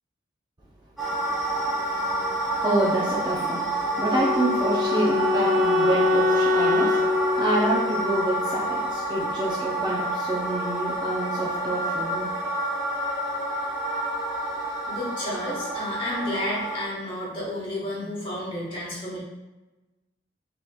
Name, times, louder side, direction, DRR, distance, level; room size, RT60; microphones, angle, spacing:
sound 1, 1.0-16.9, right 1 dB, ahead, 1.1 m, -29 dB
voice 1, 2.6-12.3, right 1 dB, 25° right, -5 dB, 0.5 m, -27 dB
Wind instrument woodwind instrument, 4.0-9.0, left 3 dB, 80° right, 0.7 m, -24 dB
voice 2, 14.9-19.2, left 1 dB, 30° left, -6 dB, 1.3 m, -31 dB
5.4 x 2.9 x 2.3 m, 1.1 s
head